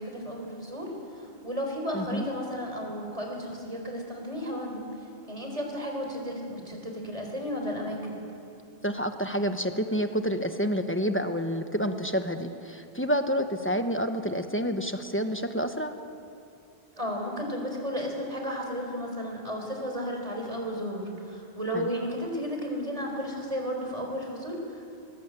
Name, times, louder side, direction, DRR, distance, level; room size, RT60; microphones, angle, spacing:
voice 1, 0.0-4.9 5.3-8.2 17.0-25.0, equal, 30° right, 1 dB, 4.5 m, -33 dB
voice 2, 1.9-2.3 8.8-15.9 21.7-21.9, equal, 10° left, 7 dB, 1.1 m, -29 dB
21.5 x 21.0 x 8.3 m, 2.5 s
omnidirectional pair, 1.1 m